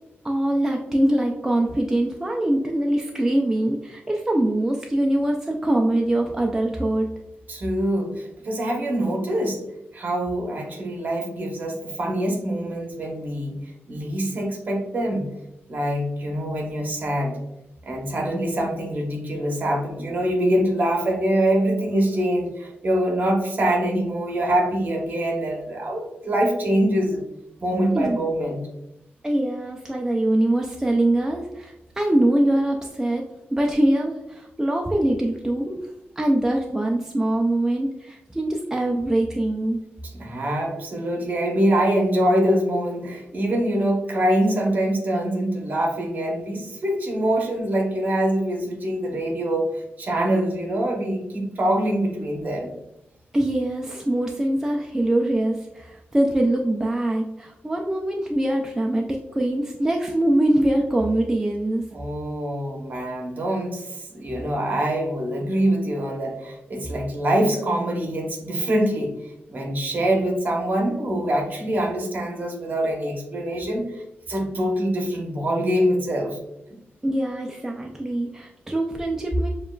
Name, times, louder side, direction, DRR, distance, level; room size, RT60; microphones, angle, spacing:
voice 1, 0.2-7.1 27.9-28.2 29.2-33.2 33.5-35.8 36.2-39.8 53.3-61.8 77.0-79.5, right 1 dB, 10° right, 0 dB, 0.3 m, -23 dB
voice 2, 7.5-9.6 9.9-13.6 13.9-15.3 15.7-17.4 17.8-27.2 27.6-28.6 40.0-52.7 61.9-69.1 69.5-74.0 74.3-76.4, right 1 dB, 45° right, 1 dB, 0.9 m, -24 dB
7.0 x 2.3 x 2.3 m, 0.89 s
wide cardioid pair, 145°, 4 cm